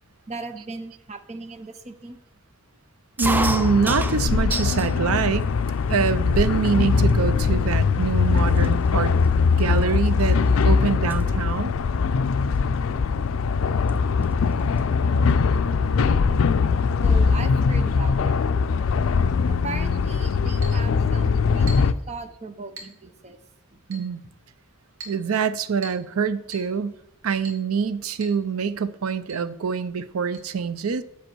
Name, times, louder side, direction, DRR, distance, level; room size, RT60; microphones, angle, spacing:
voice 1, 0.3-2.2 17.0-18.9 19.5-23.4 23.7-23.8, right 3 dB, 30° right, 9 dB, 0.7 m, -38 dB
sound 1, 3.2-21.9, left 5 dB, 65° left, 0.4 m, -21 dB
sound 2, 3.2-4.9 5.3-6.0 6.7-6.8 7.0-7.4 8.0-8.1 8.4-10.6 10.9-11.2 12.5-12.8 13.9-14.0 14.2-14.3 14.6-15.5, right 2 dB, 10° right, 0.4 m, -31 dB
voice 2, 3.2-5.5 5.9-9.3 9.6-10.4 10.6-11.7 23.9-24.2 25.1-27.0 27.2-31.0, right 6 dB, 85° right, 14 dB, 0.5 m, -25 dB
Chink clink, 20.6-20.8 21.7-22.0 22.8-23.0 23.9-24.1 25.0-25.2 25.8-26.1 26.5-26.7 27.5-27.7 28.2-28.4 28.7-28.8 29.3-29.5 30.3-30.4, right 3 dB, 65° right, 1.8 m, -41 dB
7.9 x 6.7 x 4.6 m, 0.76 s
head